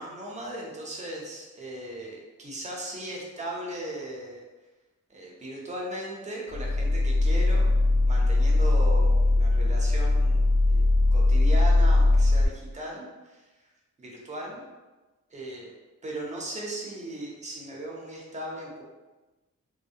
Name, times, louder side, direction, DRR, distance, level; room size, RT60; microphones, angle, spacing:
voice 1, 0.0-4.4 5.1-7.7 8.1-13.5 14.0-14.6 15.3-15.7 16.0-18.8, right 1 dB, 25° right, -2 dB, 0.5 m, -37 dB
sound 1, 6.5-12.5, left 2 dB, 85° left, 1.2 m, -21 dB
2.6 x 2.1 x 2.4 m, 1.2 s
wide cardioid pair, 170°, 31 cm